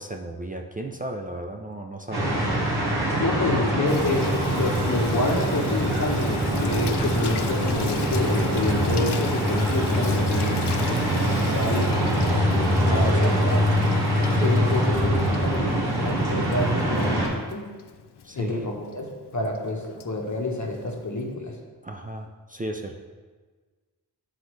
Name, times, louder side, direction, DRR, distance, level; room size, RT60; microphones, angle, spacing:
voice 1, 0.0-2.5 12.9-13.4 14.3-14.6 18.2-18.7 21.8-22.9, right 1 dB, 20° right, 2 dB, 0.4 m, -34 dB
sound 1, 2.1-17.3, equal, 70° right, 1.7 m, -23 dB
voice 2, 3.2-10.6 10.9-13.6 14.3-17.7 18.4-19.1 19.3-21.6, left 2 dB, 45° left, 1 dB, 1.0 m, -28 dB
Water tap faucet / Sink (filling or washing), 3.9-21.3, left 8 dB, 75° left, 0.5 m, -39 dB
7.8 x 4.0 x 3.1 m, 1.4 s
wide cardioid pair, 75°, 40 cm